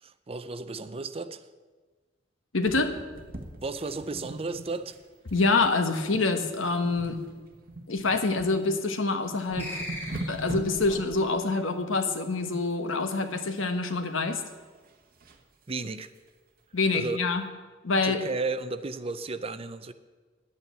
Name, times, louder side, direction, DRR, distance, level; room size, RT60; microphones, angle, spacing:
voice 1, 0.0-1.4 3.6-5.0 15.7-16.1 16.9-17.2 18.0-19.9, right 3 dB, 30° right, 12 dB, 0.5 m, -34 dB
voice 2, 2.5-2.9 5.3-7.2 7.9-9.8 10.3-14.4 16.7-17.4 17.8-18.2, left 3 dB, 80° left, 7 dB, 1.2 m, -26 dB
sound 1, 2.6-5.0 5.3-5.5 6.0-6.3 6.6-8.5 9.0-9.1 9.4-11.2 13.1-13.6 14.0-15.4 15.9-16.0 16.3-16.4 16.8-16.9, right 1 dB, 50° right, 1.4 m, -40 dB
sound 2, 9.6-10.8, left 1 dB, 10° left, 2.5 m, -38 dB
10.5 x 8.7 x 8.1 m, 1.3 s
head